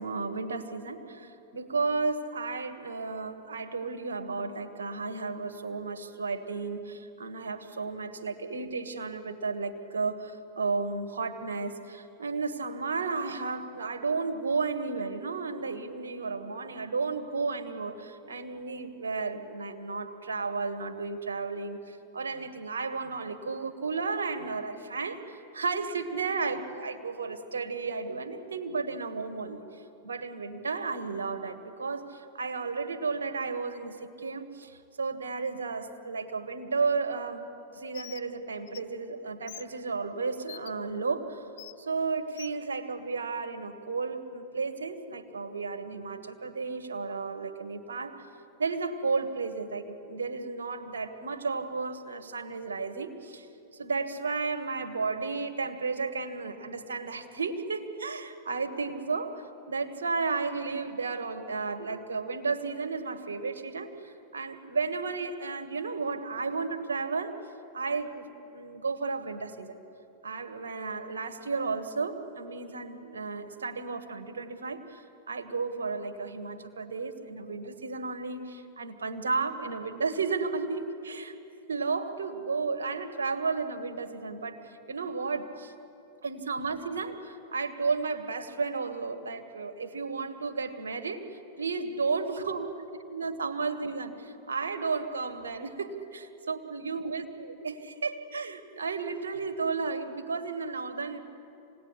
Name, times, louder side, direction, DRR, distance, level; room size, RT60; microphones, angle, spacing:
voice 1, 0.0-29.6 30.0-37.4 37.7-41.5 41.8-48.2 48.6-53.5 53.8-63.9 64.3-67.4 67.7-68.3 68.5-69.8 70.2-75.0 75.3-81.3 81.7-85.7 86.2-91.3 91.6-92.7 93.1-101.2, right 4 dB, 90° right, 7 dB, 2.0 m, -33 dB
Bird, 37.9-38.2 38.7-38.8 39.5-39.6 40.5-40.7 41.6-41.7 42.4-42.5, left 14 dB, 65° left, 0.5 m, -44 dB
26.0 x 19.0 x 10.0 m, 2.9 s
hypercardioid pair, 110°, 0 cm